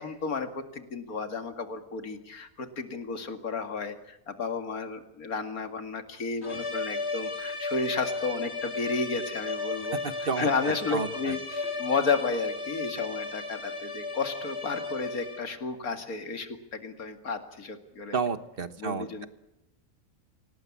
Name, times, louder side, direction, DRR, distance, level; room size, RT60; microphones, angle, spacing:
voice 1, 0.0-18.2 18.8-19.3, left 4 dB, 80° left, 8 dB, 2.6 m, -32 dB
sound 1, 6.4-15.6, left 3 dB, 45° left, 3.6 m, -35 dB
voice 2, 10.0-10.5 10.9-11.3 18.1-19.3, right 5 dB, 40° right, 12 dB, 1.4 m, -31 dB
25.5 x 18.5 x 8.5 m, 0.88 s
omnidirectional pair, 1.5 m